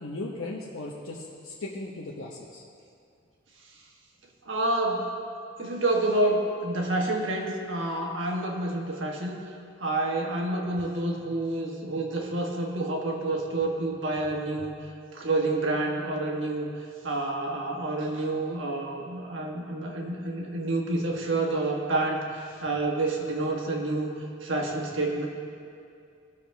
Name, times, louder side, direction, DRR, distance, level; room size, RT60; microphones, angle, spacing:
voice 1, 0.0-2.6 14.6-14.7, left 2 dB, 85° left, -4 dB, 1.0 m, -37 dB
voice 2, 4.4-5.1 5.6-9.4 9.8-14.7 15.1-16.7 17.0-24.1 24.4-25.3, right 2 dB, 65° right, 0 dB, 1.5 m, -28 dB
18.0 x 6.6 x 3.5 m, 2.4 s
head